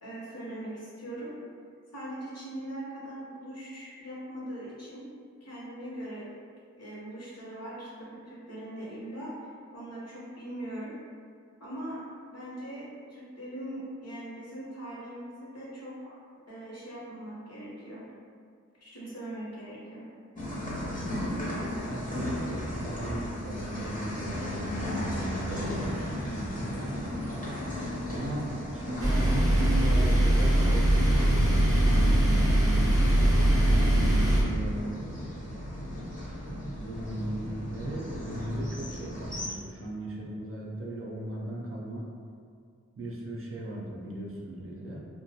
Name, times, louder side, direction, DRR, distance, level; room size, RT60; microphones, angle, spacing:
voice 1, 0.0-1.4 1.9-5.0 5.4-6.3 6.8-11.0 11.6-12.0 12.3-16.2 16.5-18.0 18.8-20.1, right 1 dB, 55° left, -7 dB, 0.9 m, -41 dB
sound 1, 20.4-39.5, equal, 25° left, 0.7 m, -36 dB
voice 2, 21.8-27.0 28.1-32.9 33.4-34.9 36.5-42.1 43.0-45.1, right 1 dB, 45° right, -4 dB, 0.5 m, -37 dB
sound 2, 29.0-34.4, right 1 dB, 10° right, 0.7 m, -22 dB
2.3 x 2.2 x 2.7 m, 2.2 s
wide cardioid pair, 60°, 31 cm